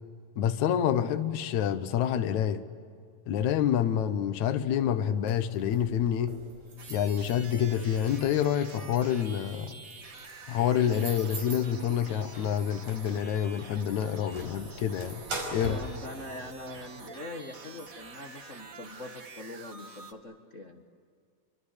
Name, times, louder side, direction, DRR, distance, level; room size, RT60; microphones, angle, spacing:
voice 1, 0.4-2.6 3.3-6.4 6.9-9.7 10.5-15.2 15.5-15.8, left 9 dB, 70° left, 2.4 m, -27 dB
sound 1, 5.3-16.9, right 2 dB, 80° right, 6.8 m, -43 dB
sound 2, 6.8-20.1, right 4 dB, 35° right, 1.6 m, -47 dB
voice 2, 15.6-20.8, left 2 dB, 40° left, 1.0 m, -43 dB
29.0 x 25.0 x 8.3 m
omnidirectional pair, 3.7 m